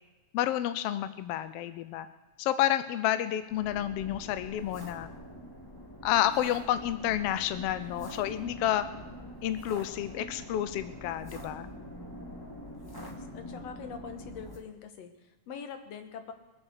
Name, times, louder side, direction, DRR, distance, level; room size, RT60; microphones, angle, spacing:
voice 1, 0.3-2.1 2.4-5.1 6.0-8.9 9.4-11.7, left 12 dB, 80° left, 12 dB, 1.4 m, -30 dB
sound 1, 3.5-14.6, equal, 10° left, 1.3 m, -44 dB
voice 2, 12.8-16.3, left 6 dB, 65° left, 7 dB, 2.3 m, -44 dB
22.5 x 7.7 x 6.5 m, 1.1 s
omnidirectional pair, 3.3 m